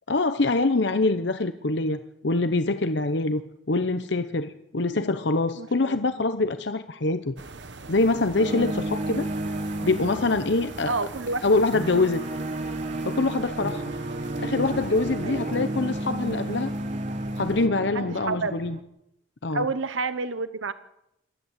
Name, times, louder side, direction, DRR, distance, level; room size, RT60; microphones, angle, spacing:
voice 1, 0.1-3.4 3.7-7.3 7.9-9.3 9.8-10.9 11.4-12.3 13.1-13.9 14.4-16.7 17.4-18.8 19.4-19.7, left 3 dB, 60° left, 10 dB, 0.9 m, -24 dB
voice 2, 5.6-6.0 10.9-11.4 15.2-15.5 17.9-18.5 19.5-20.7, right 3 dB, 80° right, 12 dB, 1.0 m, -29 dB
sound 1, 7.4-17.7, right 3 dB, 65° right, 1.3 m, -42 dB
sound 2, 8.4-18.8, right 1 dB, 35° right, 1.4 m, -32 dB
27.0 x 13.5 x 8.2 m, 0.84 s
head